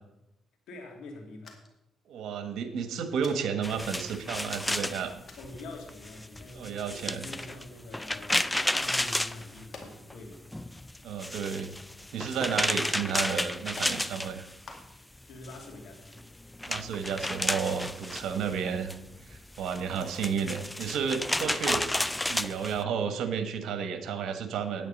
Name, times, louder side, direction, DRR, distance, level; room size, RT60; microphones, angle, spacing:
voice 1, 0.7-1.6 5.4-10.7 15.2-16.2, left 2 dB, 80° left, 3 dB, 2.5 m, -46 dB
sound 1, 1.4-1.9 2.1-2.2 3.2-3.4 4.3-4.4 5.3-5.5 7.0-7.2 8.9-9.3 9.7-10.1 10.5-10.6 11.0-11.9 12.2-12.3 13.1-13.2 13.8-14.0 14.6-15.2 15.7-16.4 17.2-17.7 18.0-18.1 18.4-18.5 18.9-19.1, left 4 dB, 50° left, 2.1 m, -49 dB
voice 2, 2.1-5.2 6.5-7.3 11.0-11.7 12.1-14.4 16.7-18.9 19.3-21.9 22.3-24.9, right 6 dB, 75° right, 8 dB, 1.4 m, -32 dB
sound 2, 3.6-10.1 10.5-14.9 15.2-22.8, left 1 dB, 10° left, 0.4 m, -32 dB
9.3 x 9.1 x 5.3 m, 0.87 s
cardioid pair, 90°, 0 cm